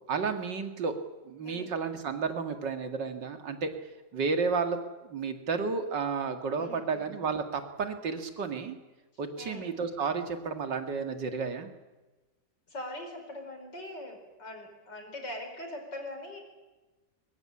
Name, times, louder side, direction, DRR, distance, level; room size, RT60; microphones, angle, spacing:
voice 1, 0.1-0.9 1.2-3.7 4.1-4.8 5.0-8.8 9.2-11.7, right 5 dB, 80° right, 7 dB, 2.6 m, -32 dB
voice 2, 6.6-7.1 9.4-9.7 12.7-16.4, left 1 dB, 80° left, 4 dB, 5.5 m, -42 dB
22.0 x 22.0 x 9.9 m, 1.2 s
omnidirectional pair, 1.9 m